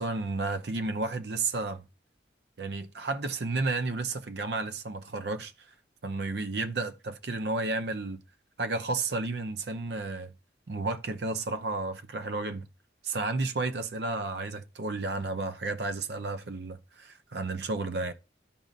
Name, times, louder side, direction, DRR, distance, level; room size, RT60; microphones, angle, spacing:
voice 1, 0.0-1.8 2.6-5.5 6.0-8.2 8.6-10.3 10.7-12.7 13.0-18.1, right 3 dB, 65° right, 0.6 m, -32 dB
13.0 x 5.2 x 2.5 m
head